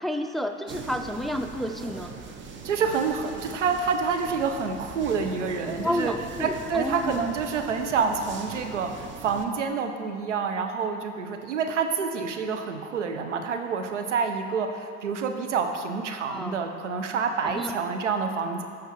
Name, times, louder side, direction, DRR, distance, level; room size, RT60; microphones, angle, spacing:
voice 1, 0.0-2.1 5.8-7.3 16.3-16.6 17.4-17.8, left 1 dB, ahead, 6 dB, 0.5 m, -30 dB
sound 1, 0.7-9.5, right 4 dB, 35° right, 0.8 m, -40 dB
voice 2, 2.6-6.1 6.4-18.6, right 5 dB, 85° right, 6 dB, 0.7 m, -28 dB
14.5 x 5.0 x 3.1 m, 2.2 s
hypercardioid pair, 65°, 35 cm